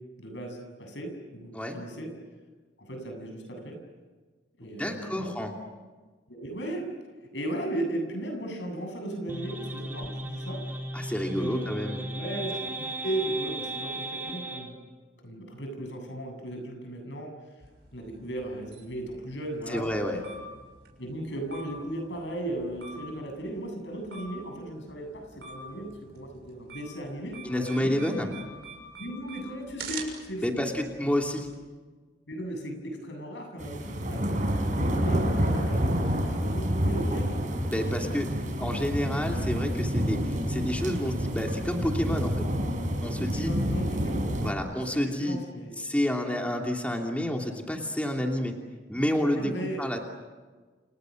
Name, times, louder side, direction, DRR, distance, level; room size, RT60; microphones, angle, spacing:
voice 1, 0.2-2.1 2.8-3.8 4.6-5.3 6.3-6.9 7.3-10.6 11.3-14.8 15.2-17.3 17.9-19.9 21.0-28.1 29.0-30.7 32.3-34.2 34.6-37.4 37.8-38.2 43.2-44.3 44.8-45.9 49.4-49.8, right 1 dB, 75° left, 4 dB, 7.8 m, -36 dB
voice 2, 4.6-5.5 10.9-12.0 19.7-20.2 27.4-28.3 30.4-31.5 37.6-38.3 38.6-42.4 43.0-43.5 44.4-45.4 45.8-48.5 48.9-49.5 49.8-50.0, equal, 10° left, 1 dB, 2.9 m, -29 dB
sound 1, 9.3-14.7, right 1 dB, 10° right, 3.6 m, -36 dB
sound 2, 17.6-31.5, right 4 dB, 60° right, 6.8 m, -46 dB
sound 3, 33.6-44.5, equal, 45° right, 5.4 m, -28 dB
29.5 x 29.5 x 6.5 m, 1.4 s
head